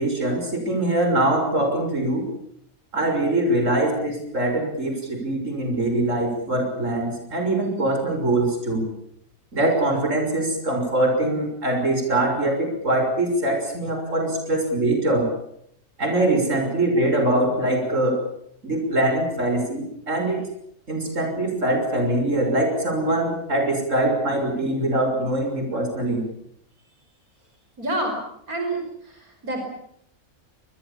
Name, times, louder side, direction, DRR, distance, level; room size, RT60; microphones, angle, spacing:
voice 1, 0.0-2.3 2.9-8.9 9.5-15.3 16.0-18.2 18.6-20.4 20.9-26.2, right 1 dB, 60° right, 4 dB, 6.7 m, -23 dB
voice 2, 27.8-28.2 28.5-29.6, right 2 dB, 80° right, 3 dB, 5.8 m, -28 dB
26.5 x 21.5 x 7.2 m, 0.72 s
omnidirectional pair, 1.5 m